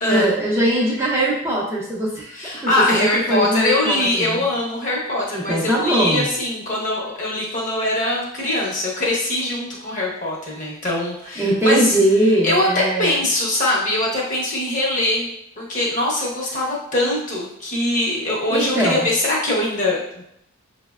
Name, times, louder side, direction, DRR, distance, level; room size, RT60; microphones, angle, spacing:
voice 1, 0.1-4.4 5.4-6.3 11.4-13.2 18.5-19.1, right 1 dB, 10° right, -6 dB, 0.5 m, -21 dB
voice 2, 2.3-11.8 12.4-15.3 15.6-20.2, left 1 dB, 35° left, -4 dB, 0.8 m, -22 dB
5.6 x 2.0 x 2.3 m, 0.74 s
head